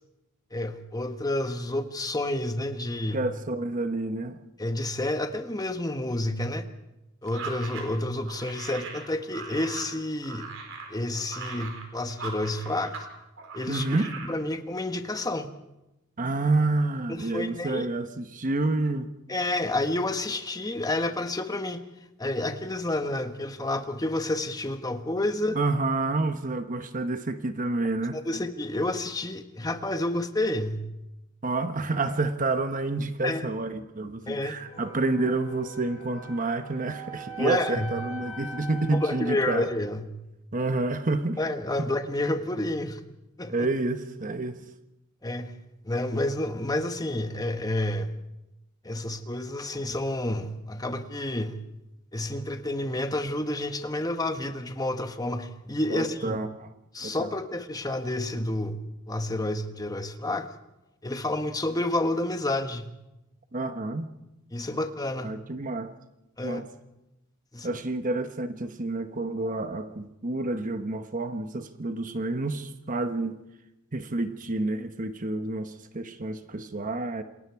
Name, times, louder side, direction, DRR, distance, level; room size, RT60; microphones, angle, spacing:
voice 1, 0.5-3.2 4.6-6.7 7.2-10.5 10.9-12.9 13.5-13.9 14.2-15.5 17.1-17.9 19.3-21.8 22.2-25.6 28.1-30.8 33.2-33.4 34.3-34.6 37.4-37.9 38.9-40.1 41.4-43.0 43.4-43.7 45.2-45.5 45.8-48.1 48.8-51.6 52.1-56.4 56.9-58.8 59.1-60.5 61.0-62.9 64.5-65.3 66.4-66.6 67.5-67.8, left 1 dB, 20° left, 8 dB, 1.3 m, -29 dB
voice 2, 3.1-4.4 13.7-14.1 16.2-19.1 25.5-28.2 31.4-39.7 40.5-41.4 43.5-44.6 55.9-56.7 57.0-57.3 63.5-64.1 65.2-65.9 66.4-66.7 67.6-73.4 73.9-77.2, right 2 dB, 40° right, 9 dB, 1.1 m, -29 dB
sound 1, 7.3-13.1 13.4-14.3, right 4 dB, 65° right, 4.4 m, -40 dB
sound 2, 34.7-39.7, right 3 dB, 35° left, 7.5 m, -41 dB
28.0 x 20.5 x 4.8 m, 0.93 s
head